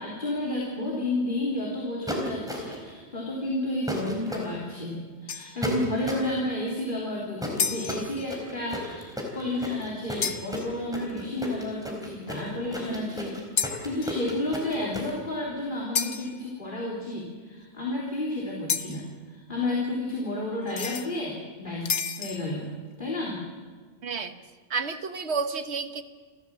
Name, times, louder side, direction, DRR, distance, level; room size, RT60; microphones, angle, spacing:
voice 1, 0.0-9.1 9.3-13.4 13.8-22.7 23.0-23.4, left 1 dB, 45° left, -4 dB, 3.7 m, -31 dB
sound 1, 2.1-2.9 3.9-4.5 5.6-6.3 7.4-15.1, equal, 5° right, 4.2 m, -34 dB
sound 2, 5.3-5.7 7.6-8.3 10.2-10.8 13.6-14.3 15.9-16.4 18.7-19.1 20.7-21.1 21.9-22.5, left 7 dB, 80° left, 1.3 m, -31 dB
voice 2, 24.0-24.3 24.7-26.0, right 5 dB, 70° right, 9 dB, 1.5 m, -30 dB
28.5 x 14.0 x 7.6 m, 1.5 s
omnidirectional pair, 1.2 m